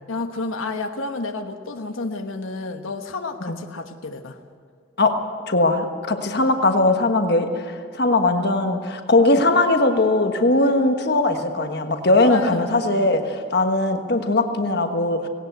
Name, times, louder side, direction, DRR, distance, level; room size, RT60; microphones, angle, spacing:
voice 1, 0.1-4.4 12.2-12.6, left 3 dB, 90° left, 5 dB, 1.2 m, -30 dB
voice 2, 5.5-15.3, left 2 dB, 55° left, 6 dB, 1.4 m, -20 dB
19.0 x 18.0 x 8.0 m, 2.1 s
head